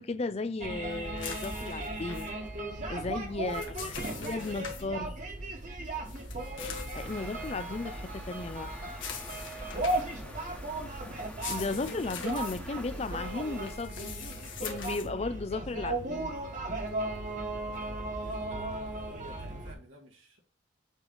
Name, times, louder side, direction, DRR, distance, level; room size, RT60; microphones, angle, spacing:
voice 1, 0.0-2.3 2.9-3.9 4.2-5.1 6.9-8.7 11.5-14.1 14.6-16.4, left 3 dB, 30° left, 0.4 m, -35 dB
sound 1, 0.6-19.7, right 2 dB, 40° right, 1.3 m, -37 dB
sound 2, 1.2-2.3 3.3-4.8 6.0-7.6 8.9-10.2 11.2-12.6 13.6-15.1, left 7 dB, 75° left, 1.7 m, -43 dB
voice 2, 3.5-5.1 9.7-10.7 17.8-20.4, right 1 dB, 85° right, 2.1 m, -52 dB
sound 3, 7.0-13.8, left 1 dB, 10° left, 1.1 m, -48 dB
8.1 x 3.2 x 5.5 m
head